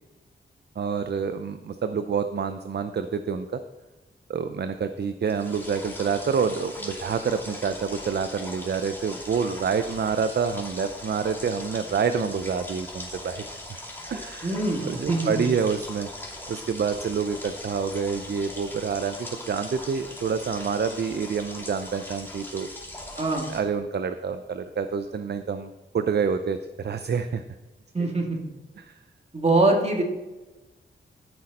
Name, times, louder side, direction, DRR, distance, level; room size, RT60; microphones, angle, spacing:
voice 1, 0.8-3.6 4.3-13.4 14.1-14.6 14.8-16.1 16.5-22.7 23.5-27.4 28.0-28.1 28.8-28.9, right 6 dB, 55° right, 9 dB, 0.6 m, -27 dB
sound 1, 5.2-23.6, left 1 dB, 10° left, 2.5 m, -40 dB
voice 2, 14.4-15.4 23.2-23.5 27.9-28.5 29.3-30.0, right 2 dB, 30° right, 0 dB, 2.3 m, -23 dB
14.0 x 6.5 x 4.2 m, 1.1 s
cardioid pair, 75°, 21 cm